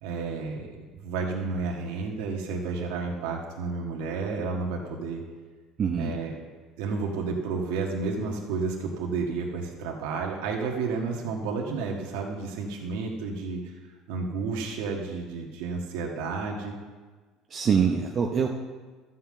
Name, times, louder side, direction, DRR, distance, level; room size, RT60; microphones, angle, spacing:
voice 1, 0.0-5.2 6.0-6.4 6.8-13.7 14.1-16.8, right 4 dB, 90° right, -1 dB, 1.6 m, -31 dB
voice 2, 5.8-6.1 17.5-18.5, right 6 dB, 35° right, 1 dB, 0.8 m, -24 dB
12.5 x 5.8 x 7.6 m, 1.4 s
cardioid pair, 140°, 0 cm